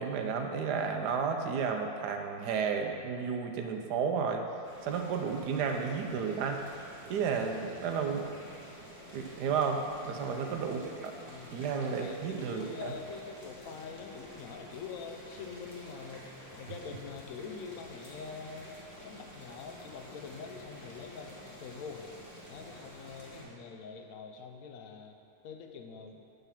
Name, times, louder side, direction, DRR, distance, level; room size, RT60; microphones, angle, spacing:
voice 1, 0.0-4.4 4.8-6.6 7.1-8.3 9.1-11.1 11.5-12.9, right 6 dB, 85° right, 4 dB, 1.2 m, -32 dB
Boiling, 4.6-23.4, equal, 25° left, 1.4 m, -50 dB
voice 2, 10.0-10.5 11.3-11.5 11.9-16.3 16.6-18.7 19.0-22.1 22.5-25.2 25.4-26.2, left 5 dB, 65° left, 4 dB, 0.9 m, -45 dB
8.1 x 3.8 x 5.7 m, 2.5 s
omnidirectional pair, 1.7 m